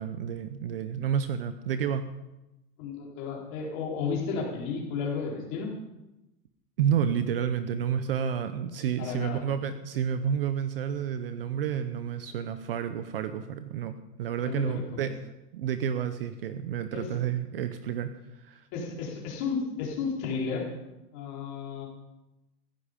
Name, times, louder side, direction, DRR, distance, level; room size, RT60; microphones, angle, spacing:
voice 1, 0.0-2.1 6.8-15.1 15.5-18.1 18.4-18.7, right 8 dB, 35° right, 11 dB, 0.8 m, -30 dB
voice 2, 2.8-5.7 9.0-9.4 14.4-14.8 16.9-17.1 18.7-20.7 21.1-21.9, left 5 dB, 30° left, -1 dB, 4.1 m, -33 dB
15.5 x 15.5 x 5.1 m, 0.96 s
supercardioid pair, 170°, 47 cm